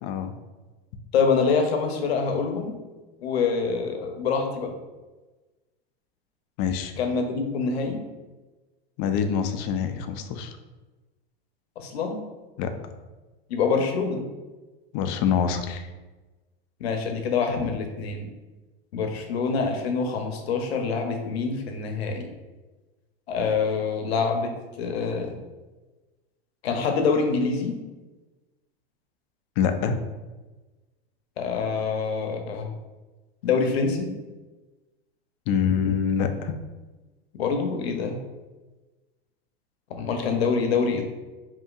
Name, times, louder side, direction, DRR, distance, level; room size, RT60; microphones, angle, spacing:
voice 1, 0.0-0.3 6.6-6.9 9.0-10.5 12.6-12.7 14.9-15.9 17.6-17.8 29.6-30.0 35.5-36.6, left 7 dB, 40° left, 8 dB, 0.4 m, -25 dB
voice 2, 1.1-2.7 3.2-4.7 7.0-8.0 11.8-12.2 13.5-14.2 16.8-18.3 18.9-22.2 23.3-25.4 26.6-27.8 31.4-32.7 33.4-34.1 37.3-38.2 39.9-41.0, left 5 dB, 85° left, 4 dB, 0.8 m, -25 dB
5.1 x 2.8 x 2.4 m, 1.2 s
supercardioid pair, 130°, 31 cm